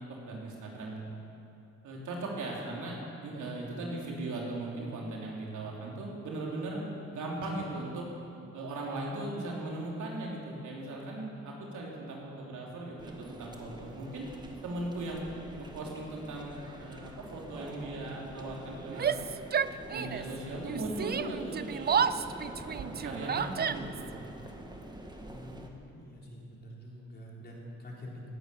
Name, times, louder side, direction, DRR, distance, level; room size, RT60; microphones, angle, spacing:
voice 1, 0.2-1.0 1.8-6.8 7.1-8.0 8.5-14.3 14.6-15.3 15.6-19.1 19.9-22.0 22.6-24.2, right 2 dB, 75° right, -2 dB, 3.4 m, -38 dB
sound 1, 13.0-25.7, right 1 dB, 15° right, 1.7 m, -46 dB
Yell, 18.9-20.4 20.6-24.1, right 7 dB, 35° right, 0.5 m, -31 dB
voice 2, 22.6-23.2 25.3-28.2, left 1 dB, 30° left, -3 dB, 4.0 m, -47 dB
18.0 x 9.4 x 7.0 m, 2.7 s
cardioid pair, 90°, 30 cm